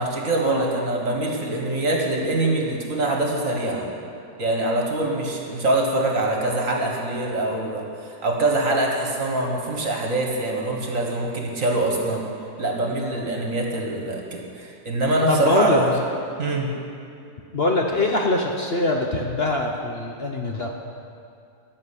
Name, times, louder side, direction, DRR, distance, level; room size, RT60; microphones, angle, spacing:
voice 1, 0.0-3.9 4.4-12.2 12.6-15.9 16.4-16.7, right 2 dB, 40° right, 0 dB, 1.7 m, -24 dB
voice 2, 15.3-15.8 17.5-20.7, left 2 dB, 65° left, 1 dB, 0.6 m, -23 dB
14.0 x 7.2 x 9.9 m, 2.5 s
omnidirectional pair, 2.3 m